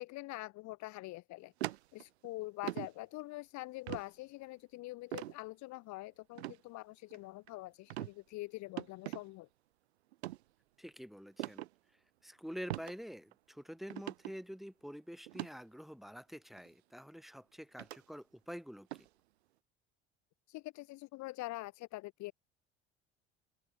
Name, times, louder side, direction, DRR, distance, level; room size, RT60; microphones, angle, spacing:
voice 1, 0.0-9.5 20.5-22.3, left 20 dB, 60° left, 2.0 m, -45 dB
sound 1, 1.6-2.3 2.6-2.9 3.9-4.1 5.1-5.3 6.3-6.6 7.1-7.5 7.9-8.1 8.8-9.2 10.1-10.4 11.4-11.7 12.7-12.9 13.3-13.4 13.9-14.3 15.3-15.5 16.6-16.7 17.8-18.0 18.9-19.1, right 16 dB, 80° right, 1.6 m, -40 dB
voice 2, 10.8-11.7 12.2-19.1, equal, ahead, 5.7 m, -47 dB
open air
hypercardioid pair, 65°, 33 cm